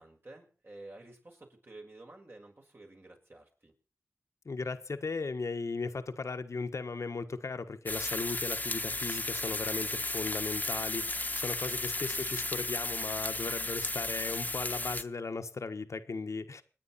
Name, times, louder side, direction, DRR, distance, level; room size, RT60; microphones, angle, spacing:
voice 1, 0.0-3.7 12.1-12.5, right 2 dB, 45° right, 5.9 m, -52 dB
voice 2, 4.4-16.6, left 4 dB, 75° left, 1.4 m, -37 dB
sound 1, 7.9-15.0, left 2 dB, 30° left, 1.3 m, -34 dB
28.5 x 9.7 x 4.2 m
cardioid pair, 50°, 5 cm